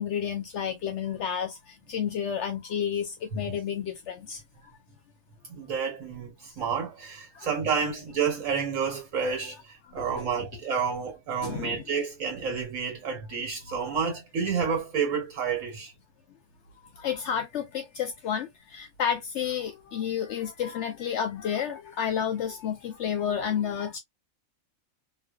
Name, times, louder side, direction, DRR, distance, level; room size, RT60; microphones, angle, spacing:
voice 1, 0.0-1.6 1.9-4.4 7.4-7.5 10.0-10.3 11.4-11.8 13.7-13.8 17.0-24.0, left 8 dB, 65° left, 0.8 m, -31 dB
voice 2, 5.5-15.9, right 6 dB, 70° right, 1.3 m, -30 dB
2.4 x 2.2 x 2.2 m
omnidirectional pair, 1.4 m